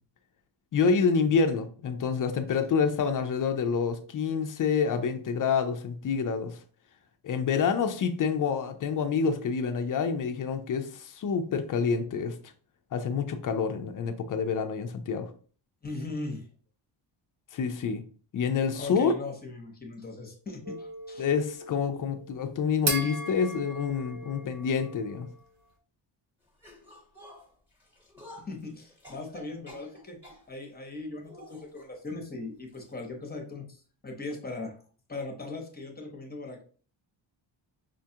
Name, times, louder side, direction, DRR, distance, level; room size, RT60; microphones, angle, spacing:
voice 1, 0.7-6.6 7.2-12.4 12.9-15.3 17.5-18.0 18.3-19.1 21.2-25.3, left 6 dB, 45° left, 0.5 m, -27 dB
voice 2, 15.8-16.4 18.7-21.3 28.4-30.2 30.5-34.8 35.1-36.6, left 3 dB, 20° left, 0.8 m, -39 dB
sound 1, 20.7-25.5, right 2 dB, 80° right, 1.0 m, -38 dB
sound 2, 26.6-30.5 31.2-31.9 32.7-32.9 33.2-33.3 34.3-34.4, equal, 5° right, 1.1 m, -51 dB
5.0 x 2.3 x 2.8 m
cardioid pair, 115°, 46 cm